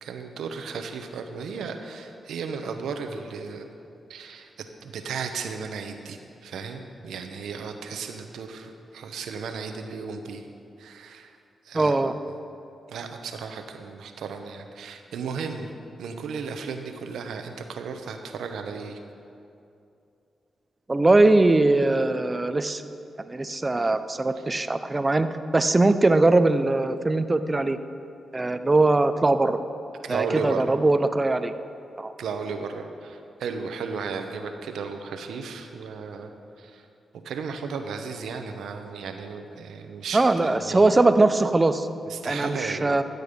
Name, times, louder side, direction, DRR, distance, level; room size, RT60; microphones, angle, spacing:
voice 1, 0.0-3.7 4.1-10.5 10.8-11.4 11.6-12.0 12.9-15.7 16.0-19.0 24.4-24.6 30.0-30.7 32.2-36.3 36.6-36.9 37.2-40.9 42.1-43.0, right 5 dB, 85° right, 6 dB, 0.9 m, -35 dB
voice 2, 11.7-12.1 20.9-22.8 23.3-25.3 25.5-27.8 28.3-29.6 30.1-31.5 32.0-32.1 40.1-41.9 42.2-43.0, right 2 dB, 30° right, 10 dB, 0.7 m, -21 dB
14.0 x 8.3 x 5.3 m, 2.6 s
cardioid pair, 55°, 0 cm